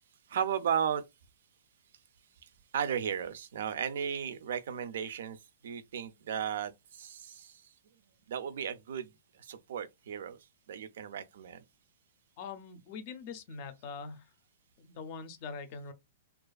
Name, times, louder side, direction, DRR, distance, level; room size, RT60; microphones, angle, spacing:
voice 1, 0.3-1.0 2.4-7.6 8.3-10.4 10.7-11.6, right 8 dB, 70° right, 0.4 m, -35 dB
voice 2, 12.4-14.2 14.8-15.9, left 5 dB, 40° left, 0.5 m, -43 dB
2.4 x 2.3 x 2.3 m
hypercardioid pair, 155°, 0 cm